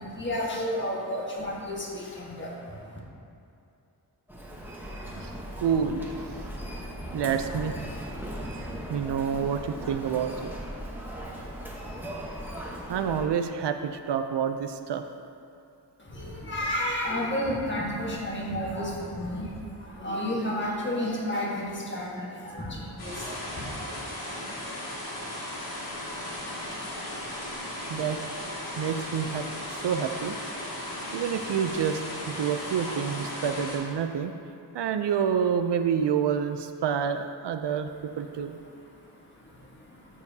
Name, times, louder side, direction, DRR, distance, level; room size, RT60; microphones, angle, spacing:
voice 1, 0.0-3.0 16.0-23.8 37.9-40.2, left 1 dB, 30° left, -3 dB, 1.4 m, -32 dB
Human voice, 4.3-13.3, equal, 5° right, 1.0 m, -38 dB
voice 2, 5.6-6.1 7.1-7.7 8.9-10.5 12.9-15.0 27.9-28.2 28.8-29.4 29.8-30.4 31.1-32.0 32.3-34.3 34.7-37.9 38.2-38.6, right 7 dB, 85° right, 8 dB, 0.6 m, -28 dB
sound 1, 23.0-33.8, left 1 dB, 65° left, 2.1 m, -36 dB
13.0 x 6.8 x 2.8 m, 2.7 s
wide cardioid pair, 155°, 40 cm